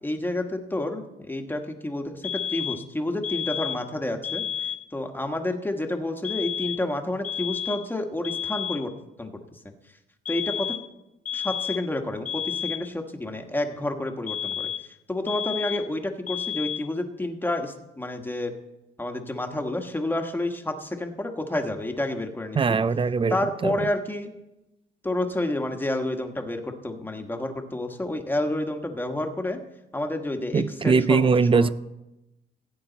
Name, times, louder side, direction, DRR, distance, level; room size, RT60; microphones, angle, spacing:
voice 1, 0.0-4.4 4.9-8.9 9.2-9.3 10.3-10.8 11.3-18.5 19.0-22.8 23.3-24.3 25.0-29.6 29.9-31.7, left 1 dB, 10° left, 1.4 m, -29 dB
sound 1, 2.2-2.9 3.2-3.9 4.2-4.9 6.2-6.9 7.2-7.9 8.2-8.9 10.3-10.9 11.3-11.9 12.3-12.9 14.3-14.9 15.3-15.9 16.3-16.9, left 8 dB, 40° left, 0.5 m, -31 dB
voice 2, 22.6-23.9 30.5-31.7, right 5 dB, 25° right, 0.4 m, -21 dB
16.0 x 8.6 x 4.1 m
cardioid pair, 90°, 20 cm